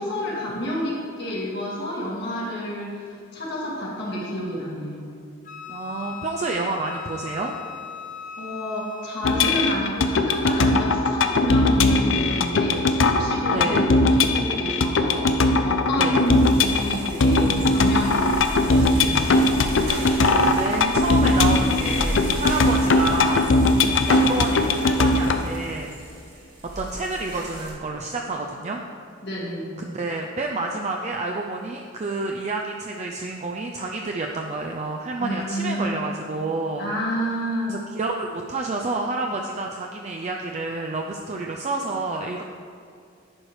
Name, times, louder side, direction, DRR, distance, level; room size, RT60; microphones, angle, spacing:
voice 1, 0.0-5.1 8.4-18.2 18.6-19.5 29.2-29.7 35.2-36.1 36.8-37.8, equal, 60° left, -5 dB, 1.9 m, -29 dB
Wind instrument woodwind instrument, 5.4-9.7, left 6 dB, 45° left, 0.7 m, -38 dB
voice 2, 5.7-7.5 13.5-13.9 16.0-16.2 20.0-23.5 24.1-25.9 26.8-28.8 29.8-36.9 37.7-42.4, right 3 dB, 35° right, 1 dB, 0.4 m, -29 dB
sound 1, 9.2-25.4, left 2 dB, 80° left, 0.6 m, -20 dB
sound 2, 16.1-27.7, right 1 dB, 55° right, 2.2 m, -35 dB
10.5 x 4.7 x 4.8 m, 2.5 s
head